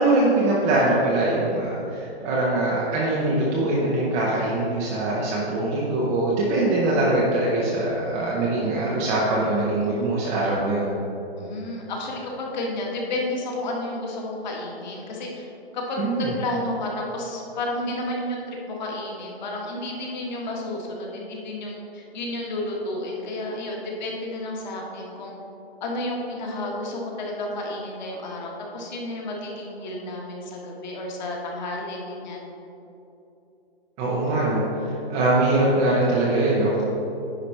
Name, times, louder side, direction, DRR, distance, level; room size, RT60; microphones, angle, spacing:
voice 1, 0.0-10.9 16.0-16.3 34.0-36.8, right 2 dB, 10° right, -5 dB, 0.5 m, -22 dB
voice 2, 11.4-15.5 15.7-25.3 25.8-32.5, left 1 dB, 45° left, -1 dB, 1.7 m, -31 dB
9.7 x 5.0 x 4.2 m, 2.9 s
hypercardioid pair, 145°, 31 cm